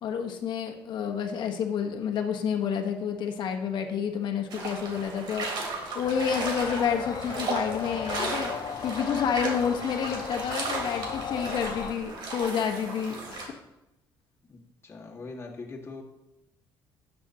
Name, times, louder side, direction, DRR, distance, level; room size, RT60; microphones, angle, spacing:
voice 1, 0.0-8.5 8.8-13.5, left 7 dB, 65° left, 4 dB, 1.2 m, -29 dB
sound 1, 4.5-13.5, right 3 dB, 65° right, 2.8 m, -35 dB
sound 2, 6.0-12.0, left 9 dB, 50° left, 0.3 m, -37 dB
voice 2, 14.8-16.0, left 3 dB, 30° left, -1 dB, 1.8 m, -41 dB
12.0 x 7.7 x 2.9 m, 0.93 s
cardioid pair, 95°, 8 cm